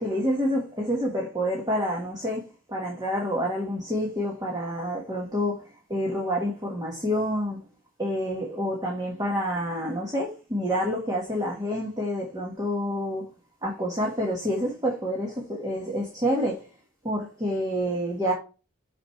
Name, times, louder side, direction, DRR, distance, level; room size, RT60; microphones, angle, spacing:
voice 1, 0.0-7.6 8.0-13.2 13.6-16.7 17.0-18.3, equal, 20° right, 1.5 m, -28 dB
6.3 x 6.2 x 3.2 m
head